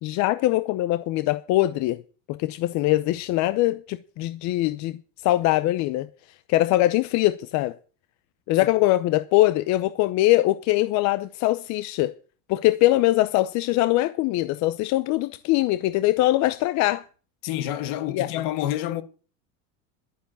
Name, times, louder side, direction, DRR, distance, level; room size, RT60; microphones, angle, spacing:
voice 1, 0.0-2.0 2.3-5.0 5.2-6.1 6.5-7.7 8.5-12.1 12.5-17.0 18.1-18.3, left 16 dB, 45° left, 0.7 m, -22 dB
voice 2, 17.4-19.0, left 12 dB, 60° left, 1.8 m, -28 dB
12.0 x 9.5 x 6.9 m
cardioid pair, 155°, 38 cm